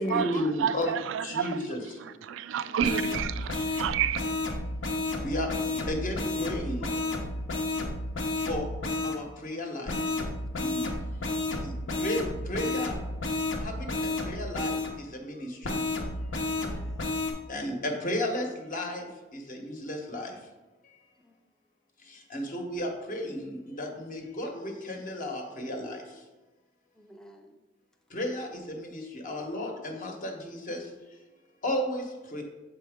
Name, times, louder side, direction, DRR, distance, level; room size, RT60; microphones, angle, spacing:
voice 1, 0.0-2.3 3.6-3.7 4.5-4.6 5.2-7.2 8.3-8.7 9.0-10.2 10.6-10.9 11.5-13.0 13.6-15.8 17.5-20.5 20.8-21.0 22.0-26.2 28.1-31.2 31.6-32.4, left 1 dB, 45° left, 3 dB, 1.0 m, -34 dB
voice 2, 0.6-1.5 2.3-4.2, right 9 dB, 75° right, 14 dB, 0.3 m, -29 dB
voice 3, 2.6-3.2 16.4-17.1 21.2-21.3 27.0-27.5, equal, 5° left, 3 dB, 0.4 m, -44 dB
sound 1, 2.8-9.2 9.9-14.9 15.6-17.3, left 2 dB, 75° left, 0.9 m, -31 dB
6.9 x 4.3 x 3.5 m, 1.1 s
head